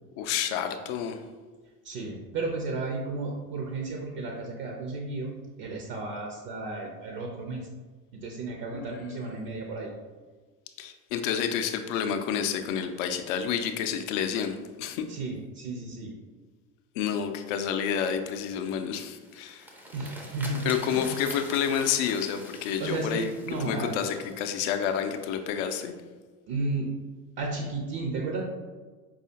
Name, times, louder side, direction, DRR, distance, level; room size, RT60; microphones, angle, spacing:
voice 1, 0.2-1.2 8.7-9.0 10.8-15.1 17.0-19.7 20.6-23.3 23.6-25.9, left 8 dB, 55° left, 7 dB, 0.5 m, -29 dB
voice 2, 1.8-5.3 5.6-7.7 8.1-9.9 15.1-16.1 19.9-21.2 22.8-23.9 26.5-26.9 27.4-28.4, right 3 dB, 50° right, 0 dB, 0.7 m, -33 dB
sound 1, 19.1-25.2, equal, 5° right, 0.5 m, -45 dB
4.8 x 2.4 x 2.7 m, 1.3 s
figure-of-eight pair, 70°, 47 cm